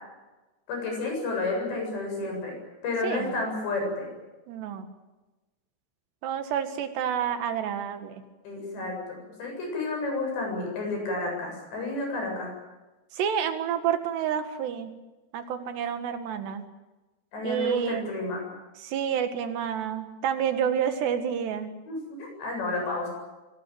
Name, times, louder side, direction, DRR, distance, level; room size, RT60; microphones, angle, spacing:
voice 1, 0.7-2.6 2.8-4.1 8.4-12.5 17.3-18.4 21.9-23.1, left 2 dB, 90° left, 1 dB, 10.0 m, -31 dB
voice 2, 4.5-4.9 6.2-8.2 13.1-15.0 15.3-16.6 17.4-18.1 18.8-21.7, right 8 dB, 80° right, 8 dB, 3.9 m, -29 dB
24.5 x 18.5 x 9.2 m, 1.1 s
omnidirectional pair, 4.8 m